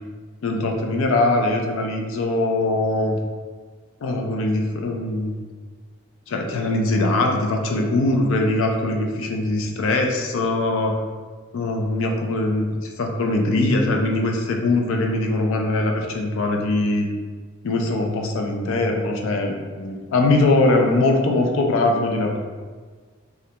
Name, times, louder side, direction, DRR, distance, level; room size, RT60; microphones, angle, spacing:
voice 1, 0.4-3.2 4.0-5.4 6.3-11.0 11.5-17.1 17.6-22.4, left 2 dB, 65° left, 2 dB, 0.3 m, -21 dB
2.3 x 2.1 x 2.7 m, 1.5 s
head